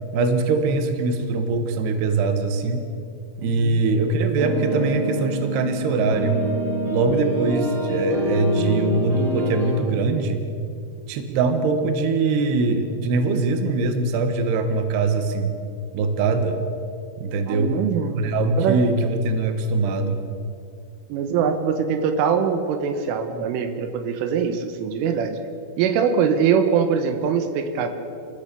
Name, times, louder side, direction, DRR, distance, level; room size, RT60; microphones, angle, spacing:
voice 1, 0.1-2.8 3.4-6.4 6.9-10.4 11.1-15.5 15.9-16.6 17.2-17.8 18.1-20.2, right 3 dB, 65° right, 7 dB, 3.3 m, -22 dB
voice 2, 3.5-3.8 17.5-18.2 18.6-18.8 21.1-25.4 25.8-27.9, right 7 dB, 85° right, 8 dB, 3.8 m, -22 dB
sound 1, 4.4-9.7, equal, 40° right, 6.0 m, -26 dB
27.0 x 16.0 x 7.0 m, 2.5 s
omnidirectional pair, 5.6 m